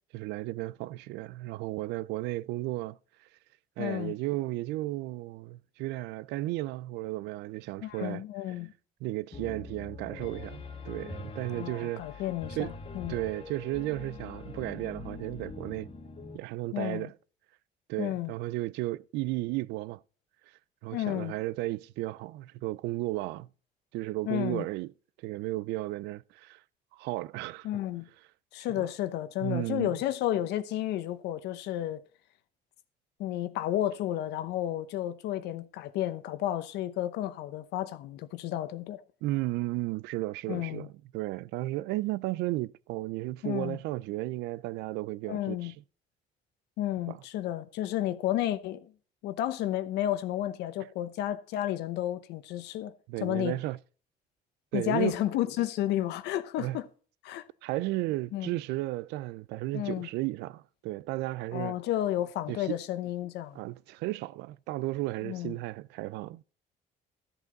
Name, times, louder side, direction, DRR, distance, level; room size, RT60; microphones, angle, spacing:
voice 1, 0.1-3.0 3.8-8.2 9.0-12.2 12.6-12.7 13.1-15.9 16.3-17.1 17.9-20.0 20.8-23.5 23.9-24.9 25.2-26.6 26.9-27.7 28.8-28.9 29.4-29.9 39.2-45.7 47.1-47.2 53.1-53.8 54.7-55.2 56.6-56.8 57.6-61.8 62.5-62.8 63.5-66.4, right 18 dB, 90° right, 0.4 m, -34 dB
voice 2, 3.8-4.1 7.8-8.7 11.5-13.2 16.7-17.1 18.0-18.3 20.9-21.3 24.3-24.7 27.6-28.1 28.5-32.0 33.2-39.0 40.5-40.9 43.4-43.8 45.3-45.7 46.8-48.9 49.2-52.9 53.2-53.6 54.7-56.9 57.2-57.4 58.3-58.5 59.7-60.1 61.5-63.6 65.2-65.6, left 13 dB, 85° left, 0.9 m, -32 dB
Piano, 9.3-16.4, left 4 dB, 30° left, 1.5 m, -43 dB
13.5 x 7.9 x 3.9 m
cardioid pair, 110°, 17 cm